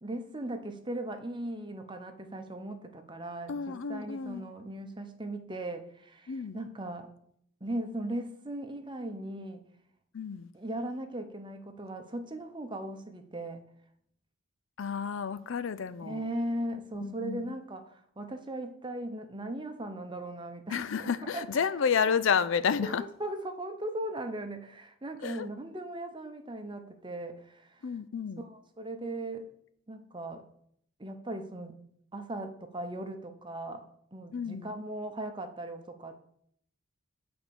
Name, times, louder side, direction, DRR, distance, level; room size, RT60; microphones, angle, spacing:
voice 1, 0.0-7.1 7.6-9.6 10.5-13.6 16.0-21.7 22.8-27.8 28.4-29.5 29.9-30.4 31.0-31.8 32.1-33.8 34.1-36.3, right 1 dB, 20° right, 0.8 m, -38 dB
voice 2, 3.5-4.5 6.3-6.6 10.1-10.5 14.8-16.3 16.9-17.5 20.7-23.0 25.2-25.5 27.8-28.4 34.3-34.7, left 6 dB, 60° left, 0.4 m, -31 dB
9.1 x 4.3 x 6.8 m
head